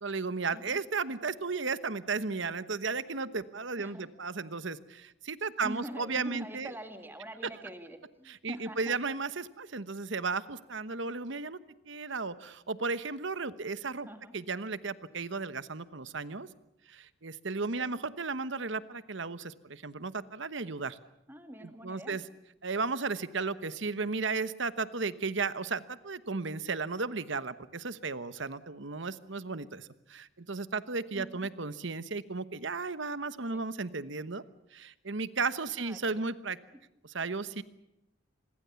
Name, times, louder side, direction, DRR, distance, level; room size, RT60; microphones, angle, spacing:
voice 1, 0.0-6.7 8.3-11.6 11.9-14.1 14.3-16.5 16.9-21.0 21.6-22.2 22.6-34.4 34.7-36.6 37.0-37.6, right 4 dB, 65° right, 15 dB, 1.1 m, -34 dB
voice 2, 5.6-9.0 14.1-14.3 17.8-18.0 21.3-22.2 31.1-31.5 33.5-33.6 35.8-36.2, right 1 dB, 10° right, 7 dB, 2.1 m, -44 dB
26.0 x 21.5 x 7.1 m, 0.90 s
head